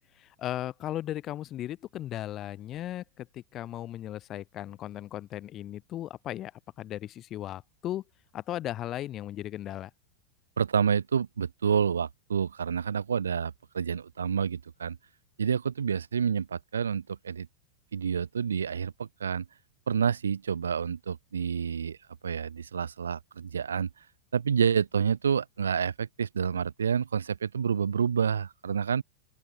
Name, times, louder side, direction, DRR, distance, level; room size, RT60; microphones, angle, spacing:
voice 1, 0.2-6.5 6.8-8.0 8.3-9.9, left 13 dB, 30° left, 1.4 m, -36 dB
voice 2, 10.6-15.0 15.4-17.5 17.9-19.4 19.9-22.0 22.2-23.9 24.3-29.0, right 7 dB, 70° right, 1.4 m, -28 dB
figure-of-eight pair, 90°, 0 cm